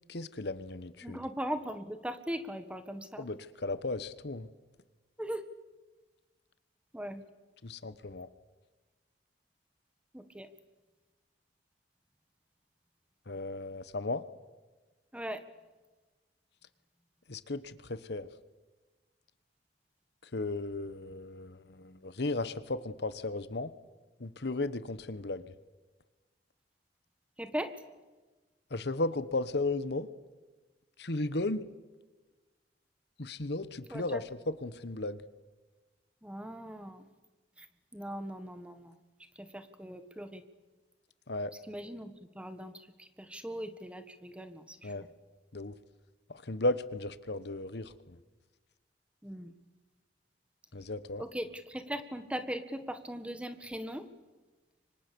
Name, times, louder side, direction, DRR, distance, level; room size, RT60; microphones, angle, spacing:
voice 1, 0.1-1.2 3.2-4.5 7.6-8.3 13.3-14.2 17.3-18.3 20.2-23.7 24.2-25.5 28.7-30.1 31.0-31.6 33.2-35.2 41.3-41.5 44.8-45.1 45.5-45.7 46.3-48.2 50.7-51.2, left 2 dB, 65° left, 14 dB, 1.2 m, -35 dB
voice 2, 1.0-3.3 5.2-5.4 6.9-7.2 10.1-10.5 15.1-15.4 27.4-27.7 33.9-34.2 36.2-37.1 37.6-37.7 37.9-38.9 39.3-40.4 41.7-45.1 49.2-49.5 51.2-54.1, equal, 5° right, 10 dB, 1.5 m, -39 dB
29.0 x 25.0 x 7.0 m, 1.2 s
head